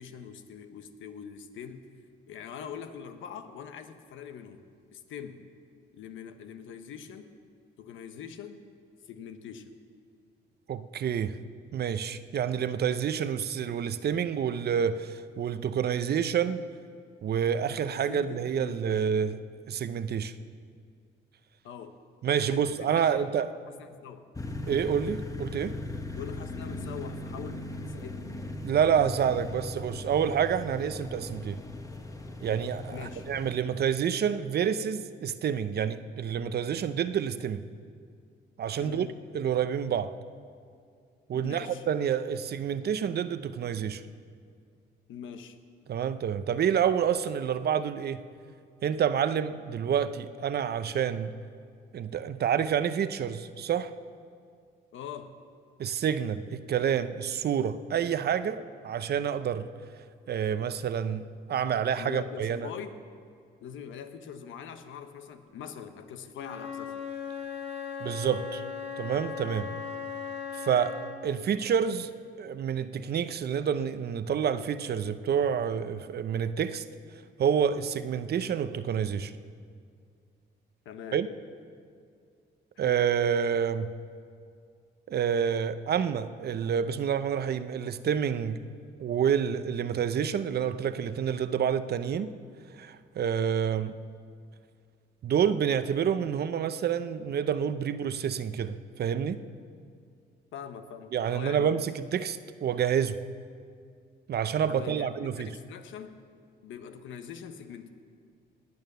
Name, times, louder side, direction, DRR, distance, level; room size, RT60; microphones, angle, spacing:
voice 1, 0.0-1.9 2.3-5.4 5.9-7.3 7.8-8.6 9.1-9.7 17.9-19.0 21.6-21.9 22.4-23.3 23.7-24.3 26.1-28.4 32.9-33.2 38.8-39.1 41.3-41.9 45.1-45.6 54.9-55.3 62.0-62.9 63.6-66.9 80.8-81.2 82.8-83.0 100.5-101.7 104.7-106.1 106.6-107.9, left 8 dB, 80° left, 8 dB, 1.1 m, -43 dB
voice 2, 10.7-11.4 11.7-16.6 17.2-19.4 19.7-20.3 22.2-23.5 24.7-25.8 28.6-31.6 32.4-37.6 38.6-39.1 39.3-40.1 41.3-44.0 45.9-48.2 48.8-51.3 51.9-53.9 55.8-59.7 60.3-62.7 68.0-68.6 69.0-69.7 70.5-71.0 71.2-72.1 72.4-76.8 77.4-79.3 81.1-81.3 82.8-83.9 85.1-88.6 89.0-92.3 92.7-93.9 95.2-99.4 101.1-103.2 104.3-105.5, right 8 dB, 55° right, 13 dB, 0.7 m, -28 dB
sound 1, 24.3-33.5, left 2 dB, 15° left, 1.2 m, -38 dB
Wind instrument woodwind instrument, 66.3-71.3, left 6 dB, 60° left, 1.9 m, -38 dB
19.0 x 8.8 x 6.8 m, 2.2 s
cardioid pair, 90°, 20 cm